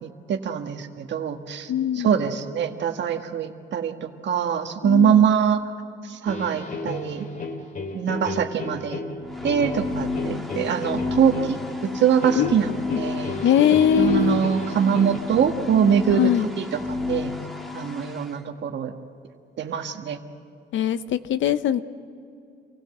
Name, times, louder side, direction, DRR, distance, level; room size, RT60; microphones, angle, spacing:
voice 1, 0.0-1.7 2.0-5.7 6.0-7.2 7.9-9.0 9.4-11.6 11.9-13.3 14.0-16.3 16.6-16.8 17.1-17.3 17.7-18.9 19.6-20.2, right 8 dB, 65° right, 6 dB, 1.6 m, -23 dB
voice 2, 1.7-2.2 4.8-5.3 12.4-12.5 12.9-13.0 13.4-14.4 16.1-16.5 20.7-21.8, left 10 dB, 75° left, 13 dB, 0.9 m, -21 dB
sound 1, 6.3-15.2, left 2 dB, 40° left, 2.3 m, -34 dB
sound 2, 9.2-18.3, left 3 dB, ahead, 2.0 m, -31 dB
27.0 x 16.5 x 7.9 m, 2.4 s
cardioid pair, 90°, 20 cm